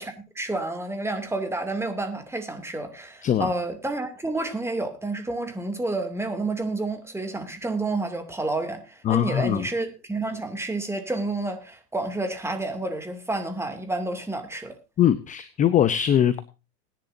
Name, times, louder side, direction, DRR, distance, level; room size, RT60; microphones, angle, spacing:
voice 1, 0.0-14.8, right 2 dB, 5° right, 2.5 m, -30 dB
voice 2, 9.1-9.6 15.0-16.4, left 10 dB, 15° left, 0.6 m, -21 dB
20.0 x 10.5 x 2.6 m
hypercardioid pair, 120°, 48 cm